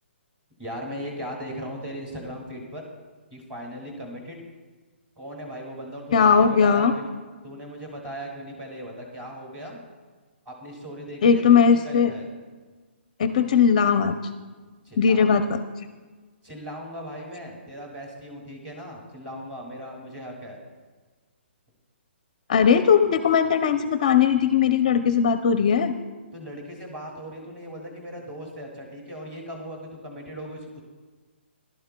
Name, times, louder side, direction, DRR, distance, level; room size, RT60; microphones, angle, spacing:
voice 1, 0.6-2.9 3.3-4.4 5.2-7.1 7.4-9.8 10.5-12.3 14.8-15.4 16.4-20.6 26.3-30.8, equal, 15° right, 0 dB, 2.1 m, -38 dB
voice 2, 6.1-6.9 11.2-12.1 13.2-14.2 15.0-15.6 22.5-25.9, left 7 dB, 35° left, 8 dB, 0.5 m, -19 dB
20.5 x 12.0 x 2.2 m, 1.4 s
hypercardioid pair, 170°, 6 cm